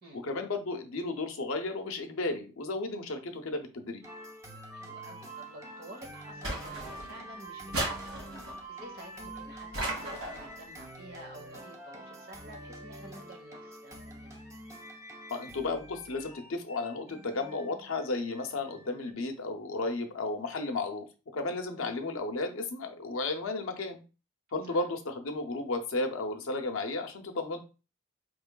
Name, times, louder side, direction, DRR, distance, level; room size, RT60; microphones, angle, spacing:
voice 1, 0.1-4.0 15.3-21.0 21.3-24.0 24.5-27.6, left 3 dB, 65° left, 4 dB, 0.6 m, -33 dB
sound 1, 4.0-19.1, right 1 dB, 15° right, 0.4 m, -46 dB
voice 2, 4.7-8.2 8.7-14.4 21.8-22.0 24.6-24.9, right 1 dB, 45° right, 1 dB, 1.0 m, -50 dB
sound 2, 6.4-7.2 7.7-8.6 9.7-10.5, right 1 dB, 75° right, 1.6 m, -35 dB
4.4 x 3.0 x 2.2 m, 0.33 s
head